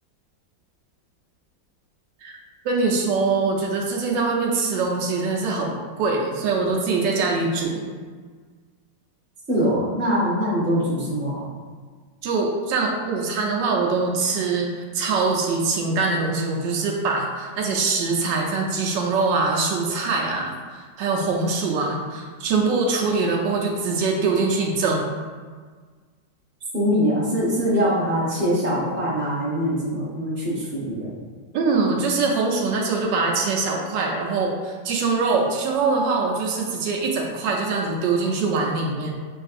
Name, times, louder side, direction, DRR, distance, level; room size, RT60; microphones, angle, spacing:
voice 1, 2.6-7.9 12.2-25.1 31.5-39.1, right 4 dB, 80° right, 0 dB, 1.3 m, -23 dB
voice 2, 9.5-11.5 26.7-31.1, equal, 10° right, -8 dB, 0.8 m, -23 dB
6.9 x 2.6 x 2.4 m, 1.5 s
omnidirectional pair, 2.0 m